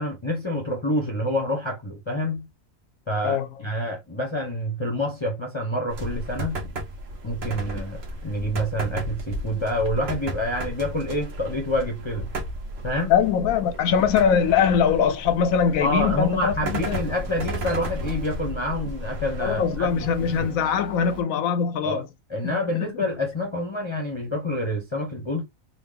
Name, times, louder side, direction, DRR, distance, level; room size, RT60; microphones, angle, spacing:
voice 1, 0.0-2.5 3.1-6.6 7.2-12.3 12.8-13.1 15.8-20.5 21.8-22.0 22.3-25.4, left 1 dB, 25° left, 0.8 m, -27 dB
sound 1, 5.9-20.4, right 1 dB, 55° right, 1.1 m, -34 dB
voice 2, 13.1-17.0 19.4-22.0 22.4-22.6, left 7 dB, 85° left, 1.1 m, -22 dB
sound 2, 15.7-21.2, right 1 dB, 80° right, 1.6 m, -41 dB
3.8 x 2.3 x 3.4 m
omnidirectional pair, 1.4 m